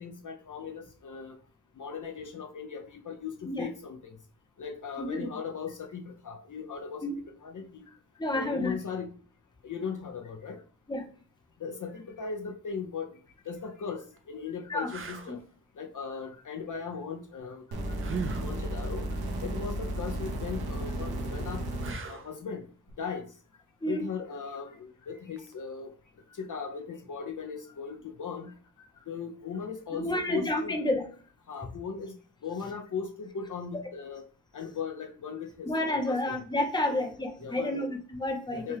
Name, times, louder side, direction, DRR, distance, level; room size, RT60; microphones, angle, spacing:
voice 1, 0.0-1.4 1.8-4.2 4.6-7.9 8.3-9.2 9.6-10.6 11.6-13.1 13.5-15.4 15.8-18.0 18.4-19.1 19.4-21.6 22.1-22.7 23.0-23.3 23.8-25.9 26.3-28.5 29.1-30.8 31.5-32.1 32.4-34.2 34.5-36.4 36.9-37.0 37.4-37.9 38.5-38.8, left 6 dB, 50° left, 3 dB, 0.5 m, -38 dB
voice 2, 8.2-8.7 10.9-11.0 14.7-14.9 15.3-15.4 23.8-24.1 29.9-31.0 35.7-38.8, left 1 dB, 10° left, 3 dB, 0.7 m, -30 dB
sound 1, 13.3-13.5 14.2-14.3 14.9-15.3 18.0-18.5 21.8-22.4 25.4-25.5, right 5 dB, 35° right, 0.4 m, -38 dB
sound 2, 17.7-21.9 22.9-23.0, right 1 dB, 65° right, 1.0 m, -33 dB
5.5 x 2.3 x 3.3 m, 0.43 s
wide cardioid pair, 145°, 39 cm